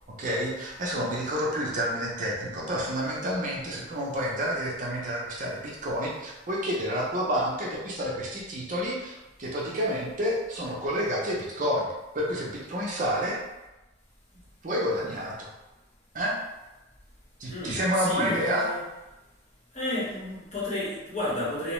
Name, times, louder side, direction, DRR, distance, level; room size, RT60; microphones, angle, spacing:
voice 1, 0.2-11.9 12.1-13.4 14.6-15.5 16.1-16.4 17.4-18.7, equal, 40° right, -4 dB, 0.5 m, -29 dB
voice 2, 17.5-18.8 19.7-21.7, left 1 dB, 35° left, -7 dB, 0.9 m, -31 dB
2.7 x 2.0 x 3.0 m, 1.0 s
head